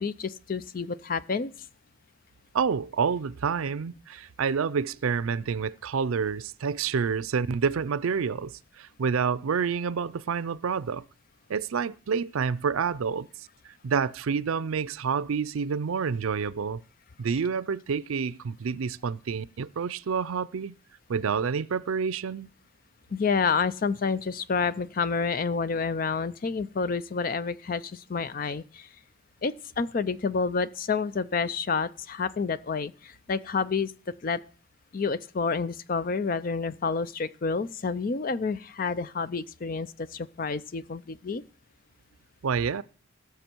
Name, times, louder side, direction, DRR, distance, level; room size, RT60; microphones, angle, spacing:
voice 1, 0.0-1.5 23.1-28.9 29.4-33.9 34.2-34.4 34.9-41.4, left 5 dB, 40° left, 0.4 m, -29 dB
voice 2, 2.5-11.1 11.5-13.5 13.8-16.8 17.2-20.7 21.1-22.5 42.4-42.8, right 6 dB, 85° right, 0.5 m, -28 dB
17.5 x 6.9 x 4.5 m
head